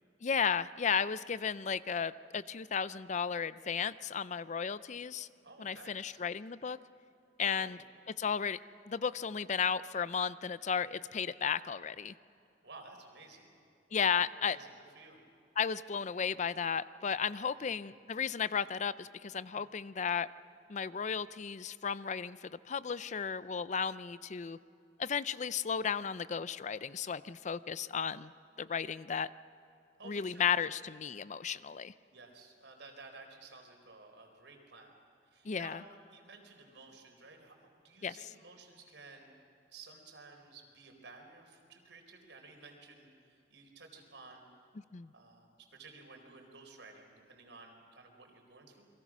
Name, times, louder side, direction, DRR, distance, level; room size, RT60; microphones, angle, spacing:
voice 1, 0.2-5.3 5.6-6.8 7.4-7.8 8.2-8.6 8.9-12.1 13.9-14.6 15.6-20.3 20.7-24.6 25.0-28.3 28.6-29.3 30.0-31.9 35.4-35.8 38.0-38.1 44.9-45.1, left 6 dB, 40° left, 16 dB, 0.5 m, -34 dB
voice 2, 5.4-6.2 7.4-7.8 12.6-13.5 14.1-15.2 17.6-17.8 19.5-19.7 30.0-30.8 32.1-34.9 35.3-35.8 36.1-37.6 37.8-39.3 39.7-44.4 45.1-48.9, right 3 dB, 80° right, 3 dB, 4.3 m, -54 dB
29.5 x 22.5 x 6.1 m, 2.7 s
head